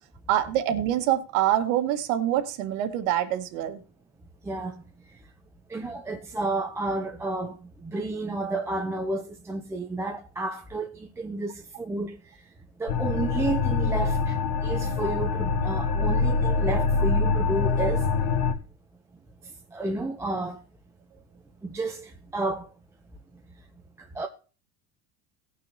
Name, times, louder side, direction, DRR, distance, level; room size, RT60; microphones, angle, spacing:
voice 1, 0.3-3.8, right 12 dB, 85° right, 1.7 m, -25 dB
voice 2, 4.4-4.8 5.7-12.2 12.8-18.1 19.4-20.6 21.6-22.7 24.0-24.3, right 2 dB, 5° right, 0.5 m, -31 dB
sound 1, 12.9-18.5, left 4 dB, 65° left, 1.3 m, -25 dB
19.0 x 6.4 x 2.8 m
cardioid pair, 165°, 38 cm